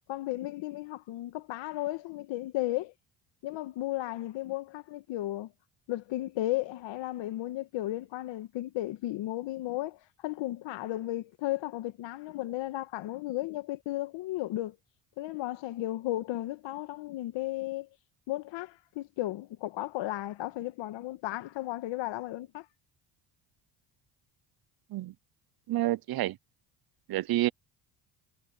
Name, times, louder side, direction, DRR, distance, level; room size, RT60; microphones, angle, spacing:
voice 1, 0.1-2.9 3.4-5.5 5.9-14.8 15.2-17.9 18.3-22.6, left 16 dB, 75° left, 1.6 m, -34 dB
voice 2, 25.7-26.4 27.1-27.5, right 15 dB, 50° right, 0.7 m, -28 dB
supercardioid pair, 75°, 46 cm